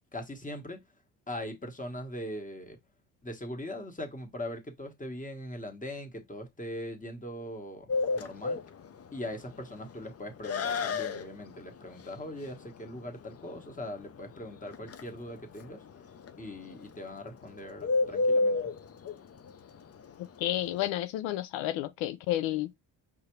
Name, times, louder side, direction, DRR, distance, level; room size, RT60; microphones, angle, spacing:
voice 1, 0.1-0.8 1.3-2.8 3.2-8.6 9.1-15.8 16.4-18.6, left 1 dB, 15° left, 1.4 m, -41 dB
Bird, 7.9-20.9, left 3 dB, 35° left, 0.6 m, -33 dB
voice 2, 20.4-22.8, left 14 dB, 90° left, 0.6 m, -31 dB
4.7 x 3.5 x 3.1 m
supercardioid pair, 75°, 44 cm